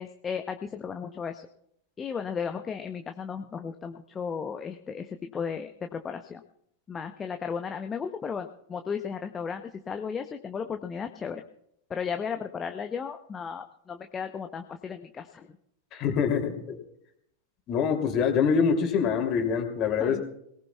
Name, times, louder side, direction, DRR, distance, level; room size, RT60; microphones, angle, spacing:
voice 1, 0.0-1.5 2.0-6.4 6.9-11.4 11.9-15.6 20.0-20.3, left 6 dB, 20° left, 6 dB, 0.8 m, -35 dB
voice 2, 15.9-16.8 17.7-20.3, left 6 dB, 35° left, 3 dB, 2.9 m, -25 dB
24.5 x 18.5 x 2.3 m, 0.72 s
figure-of-eight pair, 90°, 0 cm